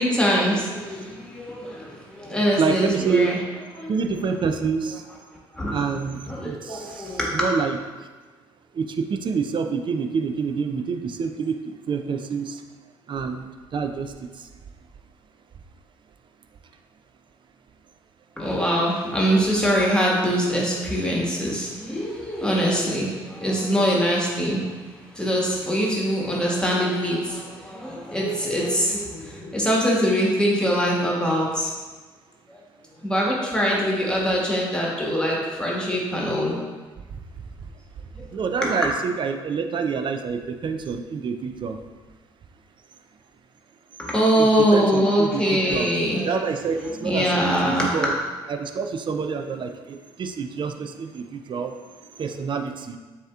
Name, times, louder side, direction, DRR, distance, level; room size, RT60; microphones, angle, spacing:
voice 1, 0.0-3.4 3.7-3.9 5.5-5.8 6.3-7.5 18.4-31.7 32.5-32.6 33.0-36.5 38.1-38.3 38.6-38.7 44.0-46.4 46.8-48.1, equal, 5° left, -4 dB, 1.4 m, -23 dB
voice 2, 2.6-3.3 3.9-5.0 5.7-7.8 8.7-12.6 13.1-14.5 38.3-41.8 44.4-45.9 46.2-48.1 48.5-51.8 52.2-53.0, right 5 dB, 45° right, 6 dB, 0.5 m, -27 dB
7.3 x 2.9 x 2.4 m, 1.3 s
hypercardioid pair, 50°, 12 cm